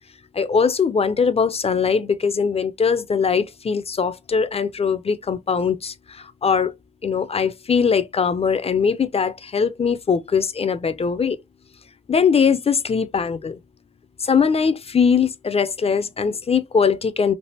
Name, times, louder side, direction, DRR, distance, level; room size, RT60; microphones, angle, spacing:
voice 1, 0.3-6.7 7.0-11.4 12.1-13.6 14.2-17.3, left 6 dB, 35° left, 0.4 m, -21 dB
3.3 x 2.5 x 2.7 m
cardioid pair, 55°, 18 cm